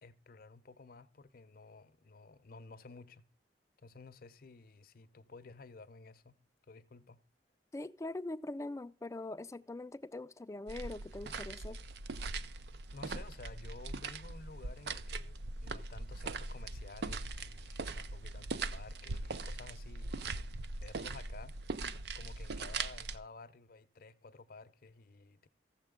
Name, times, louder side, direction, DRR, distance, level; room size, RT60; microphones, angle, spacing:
voice 1, 0.0-3.2 3.8-6.4 6.7-7.2 12.9-21.6 22.1-25.5, left 3 dB, 55° left, 0.6 m, -53 dB
voice 2, 7.7-11.8, left 2 dB, 15° left, 0.4 m, -42 dB
sound 1, 10.7-23.2, right 3 dB, 65° right, 0.5 m, -41 dB
15.0 x 7.3 x 3.6 m
head